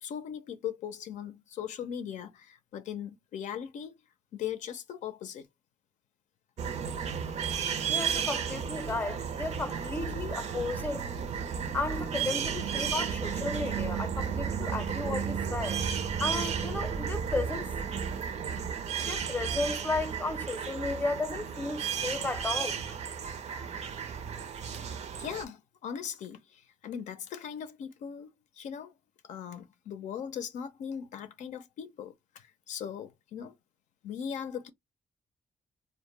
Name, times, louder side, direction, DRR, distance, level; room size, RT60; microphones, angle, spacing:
voice 1, 0.0-4.0 4.3-5.5 25.2-28.3 28.5-28.9 29.2-33.6 34.0-34.7, left 8 dB, 80° left, 0.5 m, -39 dB
sound 1, 6.6-25.4, right 7 dB, 65° right, 0.6 m, -33 dB
voice 2, 7.9-11.1 11.7-15.8 16.2-17.7 19.1-23.0 23.5-23.7, left 3 dB, 15° left, 0.6 m, -34 dB
2.1 x 2.1 x 3.2 m
cardioid pair, 70°, 12 cm